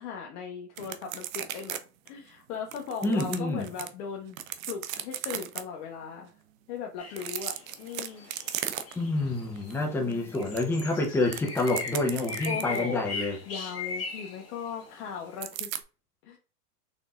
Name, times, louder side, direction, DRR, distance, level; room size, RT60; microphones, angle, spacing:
voice 1, 0.0-1.8 2.1-4.4 4.7-6.3 6.7-8.3 12.5-13.1 13.5-15.7 16.2-16.4, left 6 dB, 45° left, 0.9 m, -38 dB
sound 1, 0.8-1.8 2.1-2.2 2.7-3.9 4.3-5.6 7.1-9.2 9.6-9.8 10.1-12.9 15.4-15.8, right 11 dB, 60° right, 0.7 m, -36 dB
voice 2, 3.0-3.7 9.0-13.4, left 2 dB, 5° left, 0.6 m, -28 dB
sound 2, 7.0-15.4, left 4 dB, 30° left, 1.7 m, -39 dB
4.1 x 3.5 x 2.4 m
hypercardioid pair, 105°, 47 cm